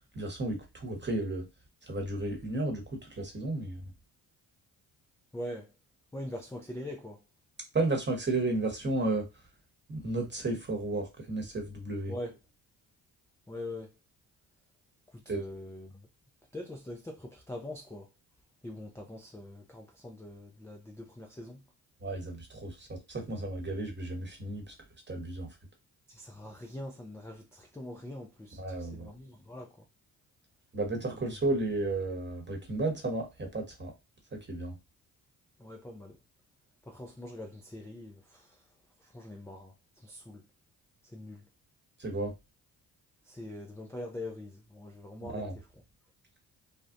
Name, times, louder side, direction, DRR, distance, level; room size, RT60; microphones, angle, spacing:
voice 1, 0.1-1.4 1.9-3.8 7.7-9.3 9.9-12.1 15.3-15.4 22.0-24.7 25.1-25.5 28.6-29.1 30.7-33.9 34.3-34.8 42.0-42.3 45.3-45.5, right 2 dB, 25° right, 1.1 m, -33 dB
voice 2, 5.3-5.7 6.1-7.2 12.1-12.4 13.5-13.9 15.1-16.1 16.5-18.1 18.6-21.6 26.1-29.9 31.1-31.2 35.6-36.2 36.9-38.7 39.0-40.4 41.0-41.4 43.2-45.7, left 1 dB, 5° left, 0.4 m, -43 dB
2.4 x 2.1 x 2.5 m
hypercardioid pair, 50°, 45 cm